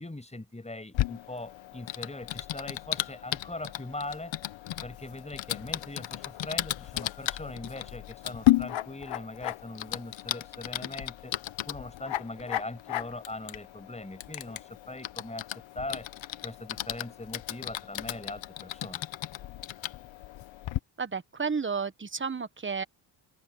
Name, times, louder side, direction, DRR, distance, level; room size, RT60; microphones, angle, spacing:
voice 1, 0.0-4.3 4.8-11.3 11.7-16.1 16.4-19.1, left 2 dB, 15° left, 7.2 m, -41 dB
Typing, 0.9-20.8, left 15 dB, 80° left, 1.0 m, -34 dB
voice 2, 21.0-22.8, right 5 dB, 25° right, 1.3 m, -32 dB
open air
cardioid pair, 80°, 45 cm